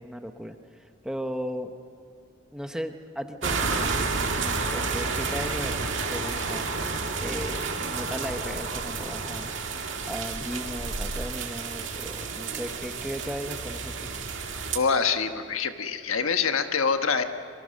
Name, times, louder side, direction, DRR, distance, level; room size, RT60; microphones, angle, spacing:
voice 1, 0.0-1.7 2.5-3.9 4.1-6.7 7.2-9.5 10.1-14.1, equal, 5° right, 6 dB, 0.9 m, -36 dB
sound 1, 3.4-14.8, right 4 dB, 60° right, 2.0 m, -30 dB
voice 2, 14.7-17.2, left 5 dB, 85° left, 7 dB, 1.3 m, -25 dB
25.0 x 23.0 x 6.5 m, 2.4 s
head